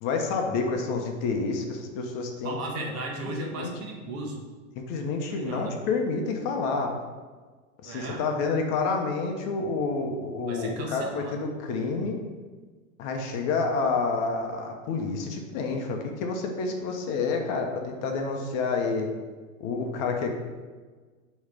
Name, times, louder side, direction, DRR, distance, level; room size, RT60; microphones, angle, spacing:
voice 1, 0.0-2.6 3.3-3.7 4.9-7.0 7.8-12.2 13.0-19.1 19.6-20.3, left 4 dB, 45° left, 3 dB, 0.9 m, -29 dB
voice 2, 2.4-4.4 5.3-5.8 7.8-8.2 10.5-11.4, right 2 dB, 35° right, 1 dB, 1.3 m, -35 dB
6.4 x 3.2 x 5.2 m, 1.4 s
hypercardioid pair, 120°, 40 cm